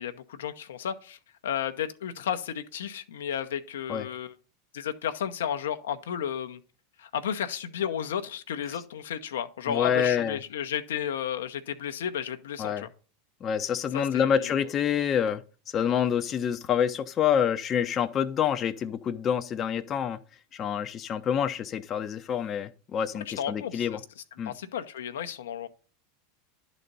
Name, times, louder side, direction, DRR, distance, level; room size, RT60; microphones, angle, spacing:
voice 1, 0.0-4.3 4.7-6.6 7.0-12.9 13.9-14.5 23.3-24.0 24.5-25.7, left 9 dB, 80° left, 0.7 m, -33 dB
voice 2, 9.7-10.4 12.6-12.9 13.4-15.4 15.7-20.2 20.5-24.0 24.4-24.5, left 8 dB, 35° left, 0.7 m, -27 dB
11.0 x 4.1 x 5.3 m
hypercardioid pair, 100°, 0 cm